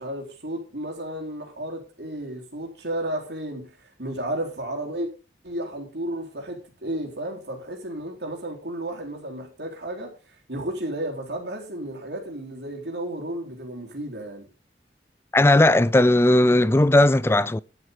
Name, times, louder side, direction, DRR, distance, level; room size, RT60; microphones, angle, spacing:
voice 1, 0.0-3.7 4.0-5.1 5.4-10.1 10.5-14.5, right 1 dB, 70° right, 4.0 m, -33 dB
voice 2, 15.3-17.6, left 1 dB, 15° left, 0.5 m, -17 dB
12.0 x 8.1 x 5.1 m
head